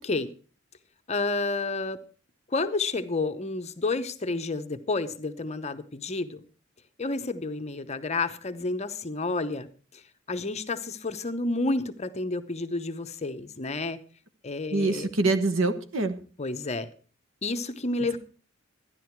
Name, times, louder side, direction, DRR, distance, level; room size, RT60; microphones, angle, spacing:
voice 1, 1.1-2.0 2.5-6.4 7.0-9.7 9.9-10.0 10.3-14.0 14.4-15.1 16.4-16.9 17.4-18.2, left 3 dB, 35° left, 0.8 m, -30 dB
voice 2, 14.7-16.1, right 3 dB, 80° right, 1.2 m, -25 dB
13.0 x 10.5 x 4.6 m
head